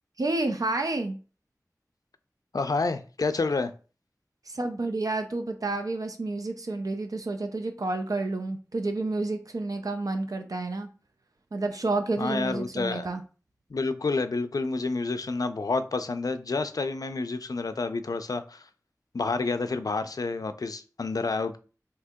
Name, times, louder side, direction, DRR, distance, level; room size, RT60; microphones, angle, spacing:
voice 1, 0.2-1.2 4.5-10.9 11.5-13.2, right 2 dB, 70° right, 0.4 m, -30 dB
voice 2, 2.5-3.7 12.2-13.1 13.7-18.7 19.1-21.6, left 3 dB, 70° left, 0.3 m, -29 dB
2.8 x 2.7 x 3.5 m
wide cardioid pair, 50°, 6 cm